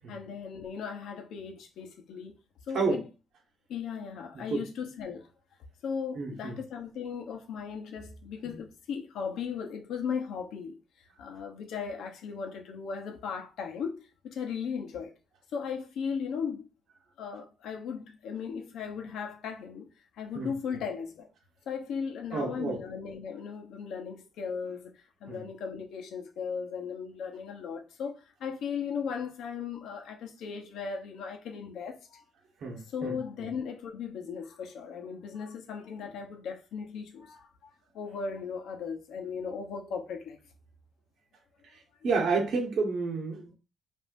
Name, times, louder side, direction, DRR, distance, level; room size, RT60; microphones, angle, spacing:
voice 1, 0.1-2.3 2.7-3.0 3.7-5.3 5.8-10.8 11.2-15.1 15.5-16.7 17.2-19.9 20.2-21.3 21.7-24.9 25.2-32.2 32.9-37.7 37.9-40.4, left 6 dB, 80° left, 1.0 m, -37 dB
voice 2, 4.3-4.6 6.1-6.6 7.6-7.8 20.3-20.5 22.3-22.8 25.3-25.5 32.6-33.5 41.7-43.5, right 4 dB, 60° right, 1.4 m, -31 dB
5.4 x 2.8 x 2.7 m
cardioid pair, 155°, 0 cm